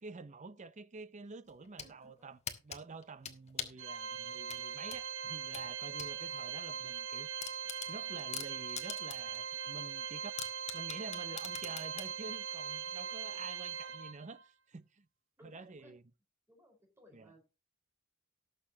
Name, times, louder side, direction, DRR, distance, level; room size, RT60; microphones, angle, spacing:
voice 1, 0.0-7.3 7.9-10.4 10.7-15.1 15.4-16.0 17.1-17.3, right 4 dB, 35° right, 0.6 m, -49 dB
sound 1, 1.5-1.9 2.5-3.8 4.5-6.1 6.5-6.6 7.0-7.1 7.4-9.4 9.7-9.8 10.4-12.1, left 7 dB, 30° left, 1.4 m, -43 dB
voice 2, 1.8-2.3 3.7-3.8 8.1-8.6 13.1-13.4 15.4-15.9 16.5-17.5, equal, 10° right, 4.4 m, -62 dB
Organ, 3.8-14.4, right 7 dB, 70° right, 1.4 m, -41 dB
18.5 x 6.8 x 2.8 m
head